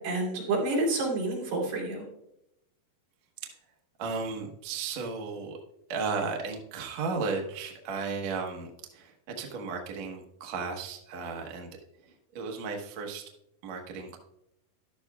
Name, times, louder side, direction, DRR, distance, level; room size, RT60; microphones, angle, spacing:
voice 1, 0.0-2.0, right 2 dB, 90° right, -4 dB, 5.2 m, -29 dB
voice 2, 4.0-5.6 5.9-11.7 12.0-13.3 13.6-14.2, right 4 dB, 60° right, 1 dB, 2.0 m, -35 dB
13.0 x 11.5 x 2.3 m, 0.82 s
omnidirectional pair, 4.4 m